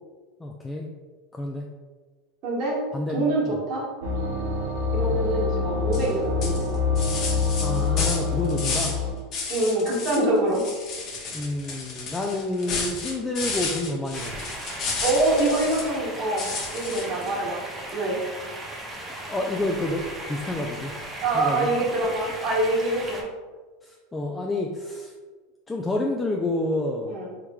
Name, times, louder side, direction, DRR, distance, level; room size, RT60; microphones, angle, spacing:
voice 1, 0.4-0.9 1.3-1.6 2.9-3.6 5.1-5.3 7.6-9.0 11.3-14.5 19.2-20.9 21.3-21.7 23.8-25.1 25.7-27.1, left 2 dB, 15° left, 0 dB, 0.3 m, -29 dB
voice 2, 2.4-2.8 3.1-3.9 4.9-6.8 9.5-10.6 15.0-17.6 17.9-18.2 21.2-23.2 27.1-27.3, right 2 dB, 50° right, -3 dB, 1.2 m, -25 dB
sound 1, 4.0-9.1, left 4 dB, 80° right, 0.6 m, -25 dB
sound 2, 5.9-6.1 6.4-9.0 9.3-10.2 10.5-16.0 16.4-17.3, left 4 dB, 45° left, 0.8 m, -32 dB
sound 3, 14.1-23.2, right 1 dB, 20° right, 0.7 m, -37 dB
3.6 x 3.0 x 2.3 m, 1.4 s
hypercardioid pair, 105°, 0 cm